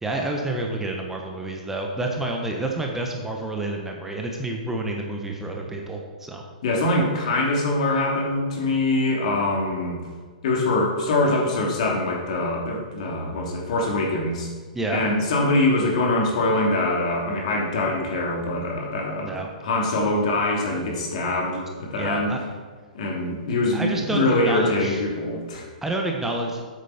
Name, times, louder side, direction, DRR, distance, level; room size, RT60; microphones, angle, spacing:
voice 1, 0.0-6.4 14.7-15.0 19.2-19.5 21.9-22.4 23.7-25.0 25.8-26.6, right 2 dB, 10° right, 1 dB, 1.2 m, -28 dB
voice 2, 6.6-10.0 10.4-14.5 14.9-19.3 19.6-22.3 22.9-25.6, left 2 dB, 55° left, -2 dB, 3.0 m, -23 dB
9.6 x 8.4 x 4.3 m, 1.5 s
figure-of-eight pair, 115°, 4 cm